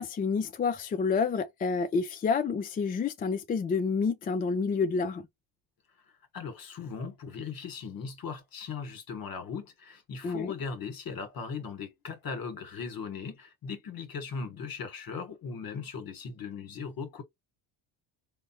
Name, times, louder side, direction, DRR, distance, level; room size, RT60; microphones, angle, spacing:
voice 1, 0.0-5.3 10.2-10.5, left 5 dB, 20° left, 0.3 m, -29 dB
voice 2, 6.3-17.2, left 5 dB, 45° left, 1.1 m, -38 dB
3.3 x 2.1 x 2.7 m
supercardioid pair, 75°, 48 cm